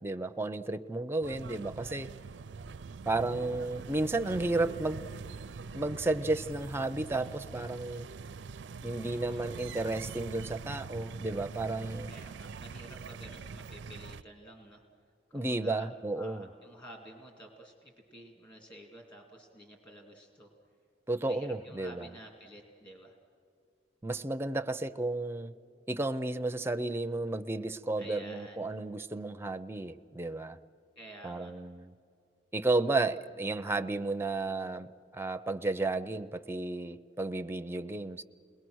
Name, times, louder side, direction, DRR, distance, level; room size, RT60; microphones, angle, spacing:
voice 1, 0.0-2.1 3.1-5.1 5.7-8.1 8.8-12.1 15.3-16.5 21.1-22.1 24.0-25.5 25.9-30.6 31.2-31.9 32.5-38.2, right 2 dB, 15° right, 9 dB, 0.5 m, -33 dB
sound 1, 1.2-14.2, right 4 dB, 75° right, 0.5 m, -44 dB
voice 2, 9.0-9.4 12.1-14.8 15.3-15.9 16.1-20.5 21.2-23.2 28.0-28.7 31.0-31.5, right 1 dB, 25° left, 1 dB, 2.3 m, -51 dB
29.0 x 20.5 x 6.3 m, 2.4 s
head